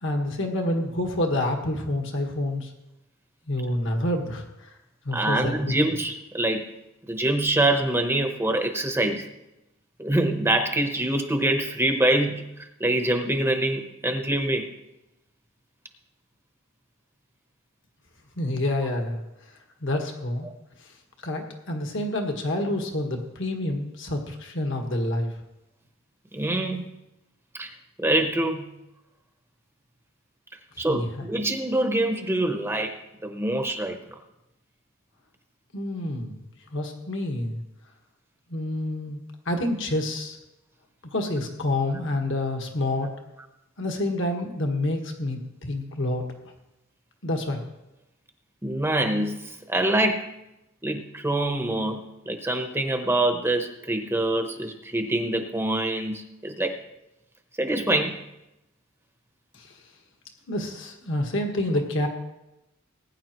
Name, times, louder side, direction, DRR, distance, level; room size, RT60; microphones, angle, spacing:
voice 1, 0.0-2.7 3.5-4.7 5.0-5.7 18.4-19.2 19.8-20.5 21.2-25.3 30.9-31.3 35.7-36.4 36.7-37.6 38.5-39.2 39.4-40.4 41.1-43.1 43.8-46.2 47.2-47.6 59.6-59.7 60.5-62.1, left 1 dB, 60° left, 3 dB, 1.6 m, -28 dB
voice 2, 5.1-6.7 7.1-9.3 10.0-12.4 12.8-14.7 20.4-20.5 26.3-26.9 27.5-27.7 28.0-28.7 30.8-33.0 33.2-34.0 48.6-50.3 50.8-52.0 52.3-56.8 57.6-58.2, right 1 dB, 10° right, 5 dB, 0.9 m, -25 dB
20.0 x 9.9 x 3.0 m, 0.92 s
head